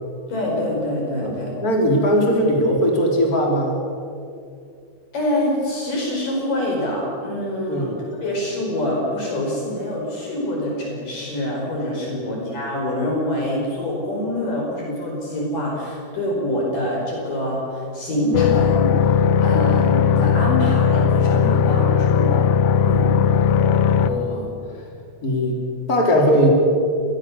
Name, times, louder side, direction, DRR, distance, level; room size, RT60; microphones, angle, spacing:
voice 1, 0.3-1.5 5.1-22.3 22.8-23.0, left 1 dB, 55° left, -2 dB, 6.3 m, -25 dB
voice 2, 1.2-3.8 7.7-8.0 12.1-12.4 24.0-24.5 25.2-25.6 25.9-26.5, equal, 20° left, 0 dB, 4.1 m, -20 dB
sound 1, 18.3-24.1, left 7 dB, 75° left, 1.7 m, -17 dB
26.0 x 21.5 x 7.3 m, 2.4 s
omnidirectional pair, 4.6 m